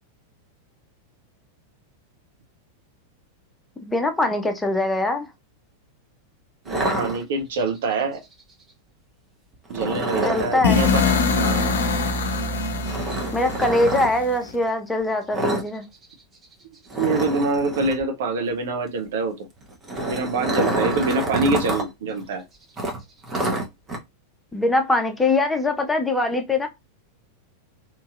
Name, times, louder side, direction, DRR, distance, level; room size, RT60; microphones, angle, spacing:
voice 1, 3.8-5.3 10.2-10.8 13.3-15.8 24.5-26.7, left 2 dB, 10° left, 0.6 m, -22 dB
sound 1, 6.7-7.7 9.7-10.6 12.8-14.1 15.3-15.7 15.9-16.1 16.4-16.5 16.9-18.0 19.6-21.8 22.2-22.3 22.8-24.0, right 1 dB, 20° right, 0.8 m, -27 dB
voice 2, 6.7-8.2 9.7-11.0 11.3-11.8 17.0-19.5 20.1-22.4, right 3 dB, 55° right, 0.6 m, -25 dB
sound 2, 10.6-14.6, left 4 dB, 65° left, 0.5 m, -23 dB
2.9 x 2.7 x 2.5 m
figure-of-eight pair, 90°, 0 cm